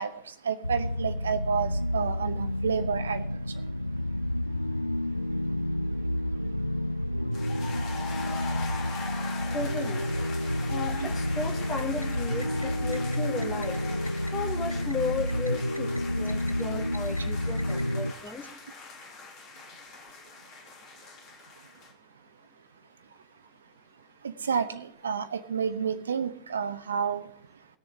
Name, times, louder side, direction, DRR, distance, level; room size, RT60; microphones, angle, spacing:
voice 1, 0.0-3.2 11.0-11.1 24.2-27.3, right 6 dB, 70° right, 12 dB, 0.9 m, -30 dB
sound 1, 0.6-18.1, left 1 dB, 90° left, 0.4 m, -30 dB
sound 2, 7.3-21.9, left 5 dB, 35° left, 2.7 m, -42 dB
voice 2, 9.5-10.0 10.7-13.8 14.3-15.9 16.2-18.5, left 3 dB, 20° left, 2 dB, 2.3 m, -35 dB
19.5 x 7.0 x 3.7 m, 0.69 s
figure-of-eight pair, 90°, 0 cm